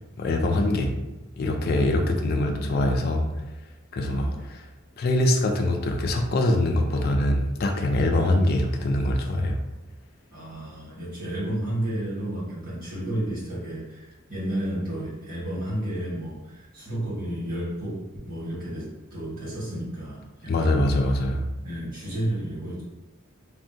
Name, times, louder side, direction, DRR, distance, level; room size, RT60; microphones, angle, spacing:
voice 1, 0.2-0.9 1.4-3.2 3.9-4.7 5.0-9.6 20.5-21.5, left 1 dB, 50° left, 3 dB, 0.4 m, -23 dB
voice 2, 2.2-2.8 4.0-4.4 8.1-8.3 10.3-20.8 21.6-22.8, right 1 dB, 45° right, -8 dB, 1.4 m, -32 dB
3.4 x 2.2 x 2.7 m, 1.0 s
head